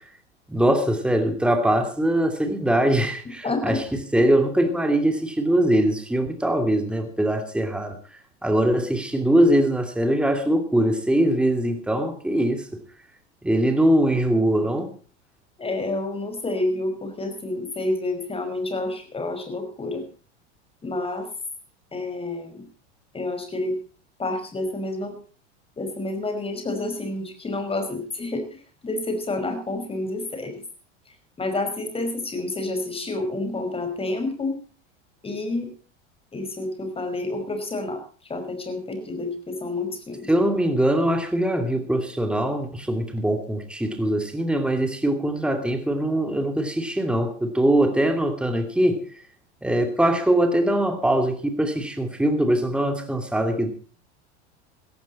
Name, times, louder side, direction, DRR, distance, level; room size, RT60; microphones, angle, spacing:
voice 1, 0.5-8.0 8.4-12.8 13.4-14.9 40.3-49.1 49.6-53.7, right 1 dB, 5° right, 6 dB, 2.6 m, -22 dB
voice 2, 3.4-3.8 15.6-20.0 20.8-21.3 21.9-22.7 23.1-23.8 24.2-25.1 25.8-28.5 28.8-30.6 31.4-34.5 35.2-35.7 36.3-38.0 38.3-40.3, left 2 dB, 15° left, 7 dB, 5.3 m, -29 dB
17.0 x 15.0 x 4.3 m, 0.39 s
hypercardioid pair, 110°, 34 cm